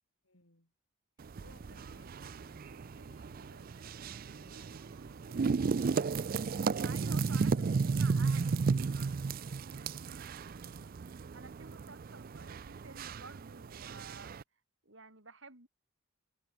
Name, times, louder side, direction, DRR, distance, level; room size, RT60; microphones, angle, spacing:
voice 1, 0.2-0.7 1.4-7.3 10.0-10.5, left 2 dB, 70° left, 6.6 m, -65 dB
sound 1, 1.2-14.4, right 4 dB, 45° right, 0.4 m, -34 dB
sound 2, 1.7-10.9, right 1 dB, 80° right, 7.6 m, -61 dB
voice 2, 6.8-8.6 11.1-14.4 14.8-15.7, right 4 dB, 60° right, 5.4 m, -52 dB
head